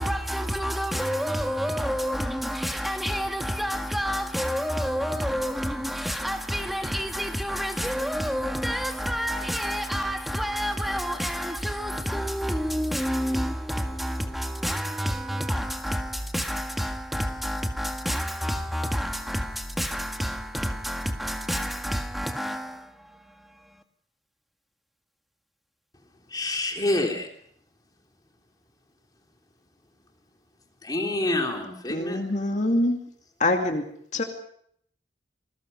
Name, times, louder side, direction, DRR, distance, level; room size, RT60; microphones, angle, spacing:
voice 1, 0.0-23.8, equal, ahead, 1.8 m, -29 dB
voice 2, 26.3-27.3 30.8-32.2, left 2 dB, 20° left, 3.2 m, -27 dB
voice 3, 31.9-33.0 33.4-33.8 34.1-34.2, left 1 dB, 40° left, 2.4 m, -24 dB
28.0 x 21.0 x 5.4 m
head